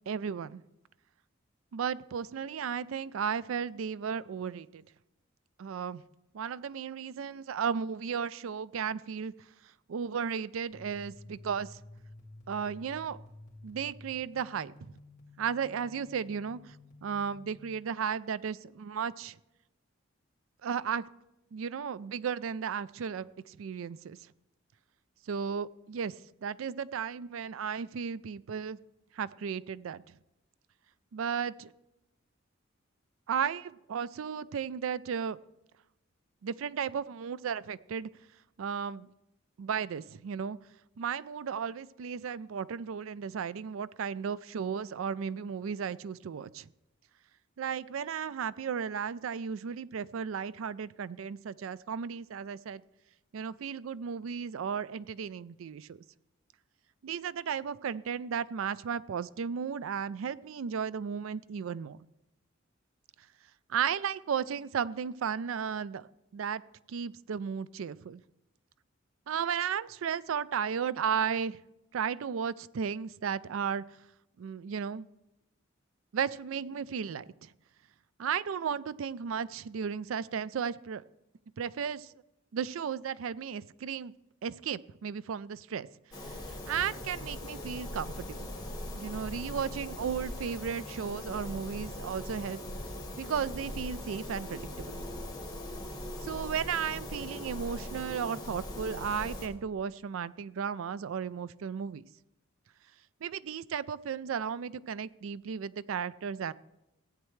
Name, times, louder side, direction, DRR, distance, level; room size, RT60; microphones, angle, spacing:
voice 1, 0.1-0.6 1.7-4.8 5.6-6.0 6.3-9.3 9.9-11.8 12.5-13.2 13.6-14.9 15.4-16.8 17.0-19.4 20.6-21.0 21.5-24.2 25.3-26.1 26.4-28.8 29.1-30.0 31.1-31.7 33.3-35.4 36.4-38.1 38.6-39.1 39.6-40.6 41.0-46.7 47.6-52.8 53.3-56.0 57.0-62.0 63.7-66.6 66.9-68.2 69.3-71.6 71.9-73.8 74.4-75.1 76.1-77.5 78.2-81.0 81.6-82.1 82.5-84.1 84.4-85.9 86.2-88.6 88.9-92.6 93.2-95.0 96.2-102.0 103.2-106.5, right 7 dB, 85° right, 18 dB, 0.4 m, -34 dB
sound 1, 10.7-17.6, left 2 dB, 40° left, 2.2 m, -52 dB
sound 2, 86.1-99.5, left 1 dB, 20° left, 1.5 m, -40 dB
15.5 x 8.8 x 3.2 m, 0.90 s
head